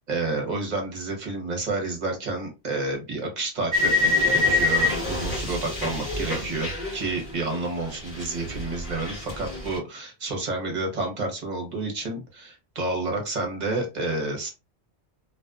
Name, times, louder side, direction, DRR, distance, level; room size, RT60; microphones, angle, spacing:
voice 1, 0.1-14.5, right 3 dB, 45° right, 2 dB, 0.9 m, -30 dB
sound 1, 3.7-7.7 7.9-9.8, left 3 dB, 35° left, 1.3 m, -26 dB
2.5 x 2.3 x 2.3 m, 0.27 s
omnidirectional pair, 1.1 m